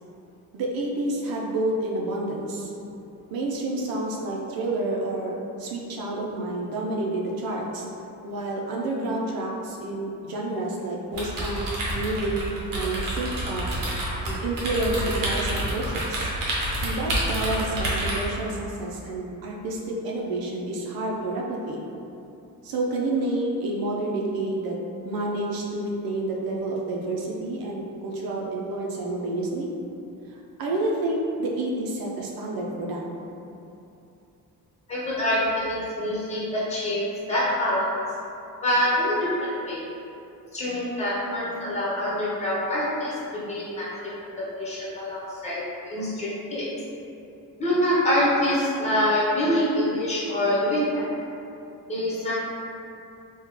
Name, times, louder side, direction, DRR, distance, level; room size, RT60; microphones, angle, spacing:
voice 1, 0.5-2.7 3.3-7.9 8.2-11.7 12.0-13.6 14.3-16.3 16.8-21.8 22.6-24.8 25.0-29.7 30.6-33.0, right 2 dB, 85° right, -2 dB, 0.6 m, -29 dB
sound 1, 11.1-18.4, right 1 dB, 70° right, 1.0 m, -28 dB
voice 2, 34.9-37.9 38.6-39.8 40.5-43.2 43.5-43.9 44.4-46.6 47.6-51.1 51.9-52.3, left 1 dB, 20° left, -8 dB, 1.0 m, -25 dB
3.6 x 2.3 x 3.1 m, 2.8 s
cardioid pair, 115°, 35 cm